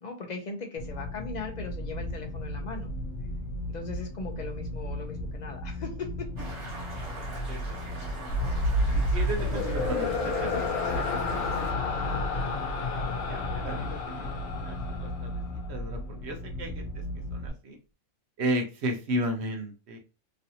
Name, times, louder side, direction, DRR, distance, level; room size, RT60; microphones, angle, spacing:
voice 1, 0.0-2.9 3.7-6.5 12.3-12.6, left 4 dB, 45° left, 3 dB, 0.6 m, -39 dB
sound 1, 0.8-17.5, left 1 dB, 60° left, 0.9 m, -36 dB
sound 2, 6.4-11.7, right 2 dB, 25° right, 1.1 m, -42 dB
voice 2, 7.5-8.4 8.9-12.2 13.0-15.4 15.7-17.0 17.3-17.8 18.4-20.0, right 1 dB, 60° right, 4 dB, 0.8 m, -35 dB
sound 3, 8.3-15.7, left 2 dB, 80° left, 1.2 m, -30 dB
3.1 x 2.6 x 2.7 m, 0.33 s
omnidirectional pair, 1.4 m